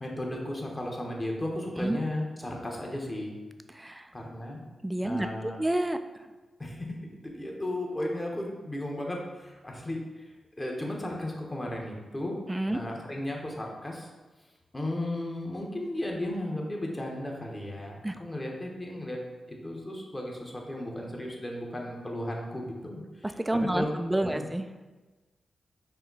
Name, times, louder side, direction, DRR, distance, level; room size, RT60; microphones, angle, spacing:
voice 1, 0.0-3.3 4.1-4.6 5.0-5.6 6.6-6.9 7.2-10.3 10.6-12.4 12.7-14.1 14.7-19.2 19.5-23.9 24.3-24.5, left 1 dB, 25° left, 0 dB, 1.0 m, -35 dB
voice 2, 3.7-4.1 4.8-6.0 12.5-12.8 18.0-18.1 23.2-24.7, right 1 dB, 15° right, 9 dB, 0.3 m, -29 dB
5.6 x 2.2 x 3.9 m, 1.2 s
cardioid pair, 50°, 0 cm